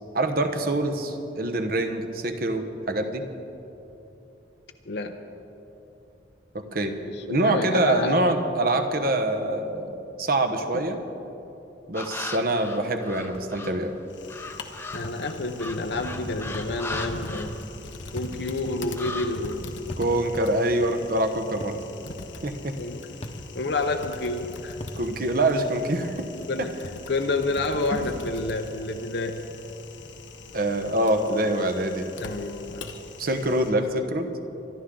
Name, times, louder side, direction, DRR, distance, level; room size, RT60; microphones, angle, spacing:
voice 1, 0.1-3.3 6.5-7.0 7.3-11.0 11.9-13.9 20.0-21.8 22.4-22.8 25.0-26.3 26.6-26.7 27.9-28.0 30.5-32.1 33.2-34.3, right 1 dB, 50° right, 6 dB, 1.1 m, -25 dB
voice 2, 4.9-5.2 7.0-8.3 14.9-17.5 18.1-19.8 22.8-23.1 23.5-24.8 26.3-26.7 27.1-29.4 32.2-32.8, left 2 dB, 60° left, 5 dB, 0.7 m, -29 dB
sound 1, 11.9-13.8 14.3-18.1 18.4-19.3, left 2 dB, 15° left, 0.8 m, -37 dB
sound 2, 13.3-13.6 15.0-15.3 16.5-16.8 18.2-18.4 19.9-20.2 21.6-21.9 23.2-23.5 24.8-25.1, left 1 dB, 35° left, 1.0 m, -38 dB
Typing, 14.1-33.7, left 3 dB, 90° left, 1.0 m, -42 dB
25.0 x 11.5 x 3.8 m, 3.0 s
head